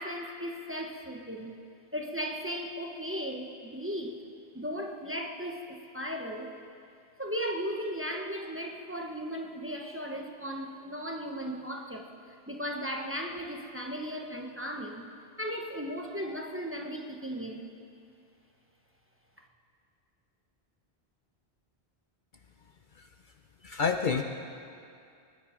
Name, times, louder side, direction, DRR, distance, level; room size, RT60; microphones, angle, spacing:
voice 1, 0.0-1.6 1.9-4.3 4.5-6.5 7.2-12.1 12.5-15.1 15.4-17.7, equal, 10° right, 1 dB, 1.0 m, -36 dB
voice 2, 23.6-24.2, left 5 dB, 55° left, 5 dB, 0.8 m, -28 dB
24.0 x 10.5 x 5.1 m, 2.4 s
omnidirectional pair, 1.1 m